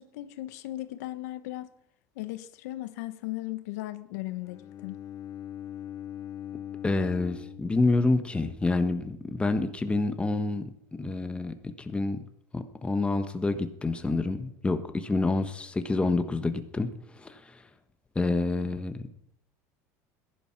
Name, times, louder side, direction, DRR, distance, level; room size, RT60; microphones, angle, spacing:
voice 1, 0.0-1.7 2.2-5.0, left 16 dB, 85° left, 1.0 m, -37 dB
Bowed string instrument, 4.4-8.5, left 11 dB, 45° left, 0.7 m, -41 dB
voice 2, 6.8-10.7 11.0-12.2 12.5-17.6 18.1-19.0, left 3 dB, 15° left, 1.2 m, -28 dB
16.0 x 11.0 x 5.9 m
supercardioid pair, 115°, 8 cm